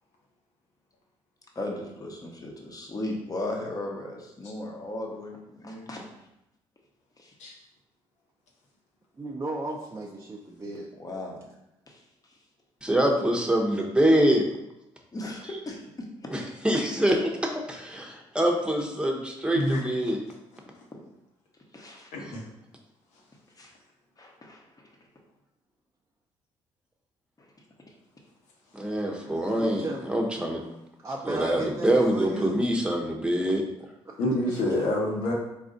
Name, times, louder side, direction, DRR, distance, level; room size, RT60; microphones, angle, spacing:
voice 1, 1.5-6.1 7.2-7.3 11.0-11.5 11.9-12.4 15.1-16.1 21.7-22.1 23.6-23.7 24.2-24.9 27.4-27.5, left 1 dB, 30° left, 0 dB, 1.1 m, -37 dB
voice 2, 9.2-10.9 29.6-30.1 31.0-32.6 34.0-34.2 34.5-34.6, right 2 dB, 25° right, -1 dB, 0.6 m, -35 dB
voice 3, 12.8-14.4 16.3-20.2 28.7-30.6 31.3-33.6, right 1 dB, 10° right, 1 dB, 1.0 m, -25 dB
voice 4, 22.1-22.5 29.0-29.6 34.2-35.3, left 1 dB, 75° left, -1 dB, 1.1 m, -29 dB
4.0 x 2.5 x 3.9 m, 0.89 s
supercardioid pair, 60°, 12 cm